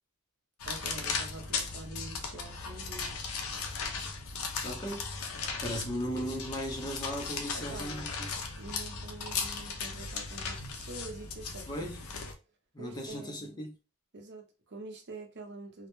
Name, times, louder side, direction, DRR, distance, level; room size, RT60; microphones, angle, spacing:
sound 1, 0.6-12.3, left 4 dB, 70° left, 0.5 m, -37 dB
voice 1, 0.6-3.2 7.5-8.1 8.6-11.9 12.8-13.6 14.1-15.9, right 2 dB, 50° right, 0.6 m, -46 dB
voice 2, 4.6-5.0 5.6-8.3 11.7-12.0 12.7-13.7, equal, 20° left, 0.5 m, -37 dB
2.1 x 2.1 x 2.9 m
head